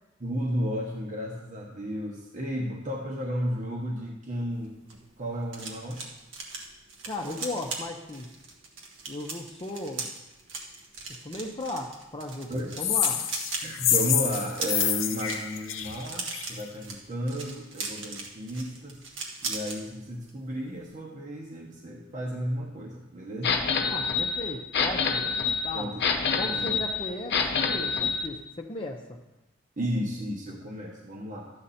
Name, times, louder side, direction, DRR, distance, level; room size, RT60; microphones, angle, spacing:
voice 1, 0.2-4.8 5.2-6.0 12.5-12.9 13.6-19.0 19.4-23.6 25.7-26.0 26.5-26.8 29.8-31.5, equal, 40° right, -1 dB, 1.3 m, -33 dB
sound 1, 4.6-19.8 20.1-20.4 20.7-20.9, right 4 dB, 75° right, 1.9 m, -39 dB
voice 2, 7.0-8.3 9.1-10.1 11.1-12.5 12.8-13.2 23.9-25.2 25.6-25.9 26.3-29.2, left 1 dB, 25° left, 1 dB, 0.8 m, -36 dB
sound 2, 12.8-16.6, left 10 dB, 90° left, 0.8 m, -27 dB
sound 3, 23.4-28.3, left 5 dB, 55° left, 0.9 m, -27 dB
13.0 x 8.8 x 4.2 m, 1.0 s
head